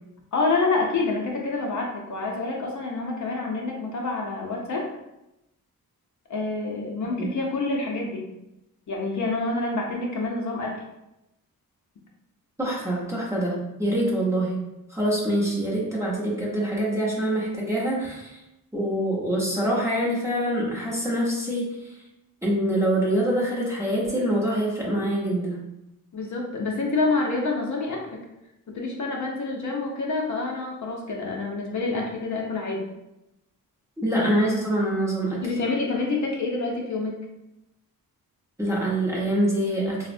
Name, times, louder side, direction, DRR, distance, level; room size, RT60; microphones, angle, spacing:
voice 1, 0.3-4.9 6.3-8.3 8.9-10.8 26.1-28.2 28.7-32.9 35.4-37.2, left 3 dB, 55° left, 0 dB, 0.5 m, -27 dB
voice 2, 12.6-14.6 14.9-18.4 18.7-21.6 22.4-25.6 34.0-35.4 38.6-40.1, right 1 dB, 10° right, -6 dB, 0.6 m, -25 dB
3.4 x 2.0 x 2.5 m, 0.89 s
wide cardioid pair, 145°, 36 cm